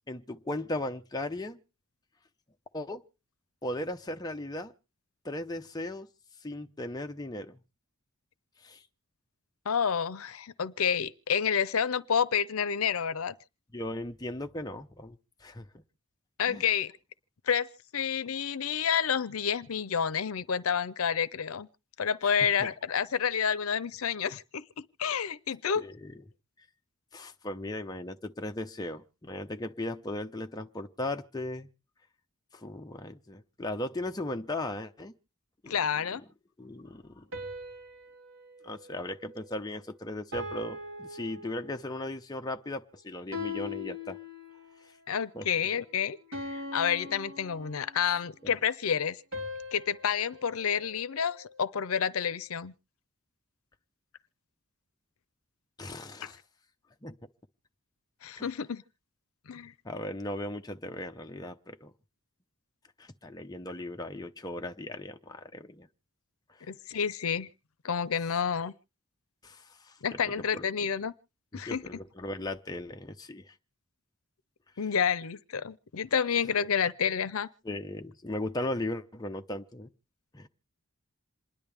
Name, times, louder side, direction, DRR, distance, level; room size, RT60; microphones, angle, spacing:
voice 1, 0.1-1.6 2.7-3.0 3.6-4.7 5.2-6.1 6.4-7.6 8.6-8.8 13.7-15.8 16.5-16.6 22.2-22.7 25.8-26.1 27.1-31.7 32.5-35.1 35.6-35.7 36.6-37.2 38.6-44.2 44.8-44.9 45.3-45.5 48.1-48.2 48.4-48.5 55.8-56.4 57.0-57.1 58.4-58.5 59.8-61.9 63.0-65.9 66.5-66.6 69.4-69.9 70.2-70.7 71.5-73.5 77.6-79.9 80.3-80.5, left 1 dB, 20° left, 0.7 m, -37 dB
voice 2, 9.7-13.3 16.4-16.9 17.5-17.7 17.9-21.7 22.0-24.6 25.0-25.8 35.7-36.2 45.1-46.2 46.4-49.2 49.7-52.7 56.2-56.3 58.2-58.8 59.5-59.7 66.7-67.5 67.8-68.7 70.0-71.1 71.5-71.8 74.8-77.5, left 7 dB, 85° left, 0.6 m, -29 dB
sound 1, 37.3-39.8 40.3-42.1 43.3-44.8 46.3-48.2 49.3-51.7, left 3 dB, 65° right, 3.3 m, -41 dB
27.5 x 10.5 x 3.4 m
head